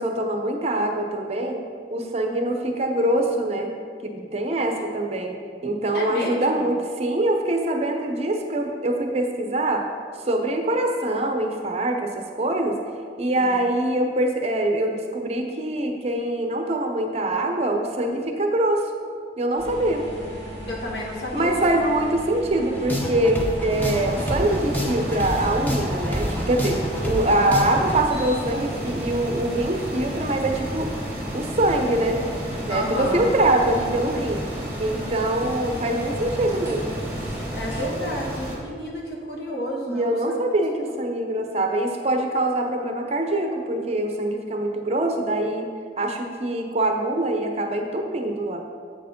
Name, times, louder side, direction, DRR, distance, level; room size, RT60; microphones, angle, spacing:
voice 1, 0.0-1.6 1.9-3.7 4.0-9.8 10.3-12.8 13.2-18.8 19.4-20.0 21.3-30.9 31.3-32.2 32.5-34.5 34.8-36.9 39.8-45.7 46.0-48.6, right 1 dB, 35° right, 3 dB, 0.6 m, -24 dB
voice 2, 5.9-6.7 13.4-13.6 20.7-21.6 32.7-33.3 37.6-40.4 40.8-40.9, left 1 dB, 65° left, -2 dB, 1.5 m, -31 dB
sound 1, 19.6-37.8, equal, 35° left, 2.1 m, -37 dB
sound 2, 22.7-28.0, left 1 dB, 10° left, 0.8 m, -28 dB
sound 3, 23.7-38.6, equal, 15° right, 1.6 m, -33 dB
7.6 x 4.6 x 5.2 m, 2.1 s
head